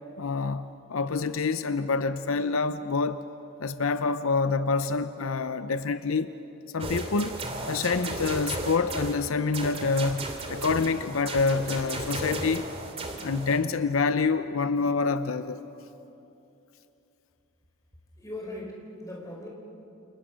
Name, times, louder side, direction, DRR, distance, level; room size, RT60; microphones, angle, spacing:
voice 1, 0.2-3.2 3.6-6.3 6.7-7.4 7.7-12.6 13.2-15.6, left 4 dB, 75° left, 0.7 m, -27 dB
sound 1, 6.8-9.2 9.5-13.6, right 2 dB, 30° right, 2.7 m, -35 dB
voice 2, 18.2-19.5, left 1 dB, 15° left, 5.0 m, -39 dB
29.0 x 29.0 x 6.3 m
head